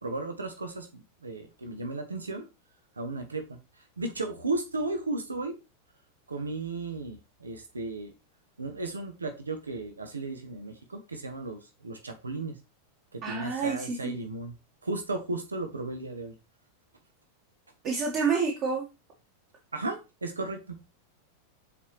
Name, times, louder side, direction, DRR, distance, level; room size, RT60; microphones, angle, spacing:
voice 1, 0.0-2.4 3.0-3.6 4.0-5.5 6.3-8.1 8.6-12.6 13.1-14.5 14.8-16.3 19.7-20.8, right 2 dB, 75° right, 6 dB, 1.0 m, -35 dB
voice 2, 13.2-14.2 17.8-18.9, right 5 dB, 40° right, -2 dB, 1.7 m, -28 dB
7.1 x 4.4 x 3.2 m, 0.28 s
figure-of-eight pair, 90°, 0 cm